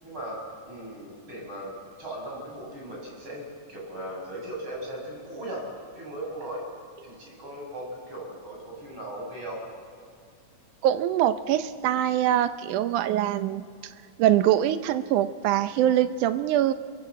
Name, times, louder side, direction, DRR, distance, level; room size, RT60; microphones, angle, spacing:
voice 1, 0.0-5.7 6.0-6.7 7.0-9.6, right 1 dB, 40° right, -2 dB, 7.2 m, -38 dB
voice 2, 10.8-13.6 14.2-16.7, right 12 dB, 85° right, 11 dB, 2.3 m, -23 dB
25.0 x 23.0 x 7.8 m, 2.3 s
omnidirectional pair, 3.5 m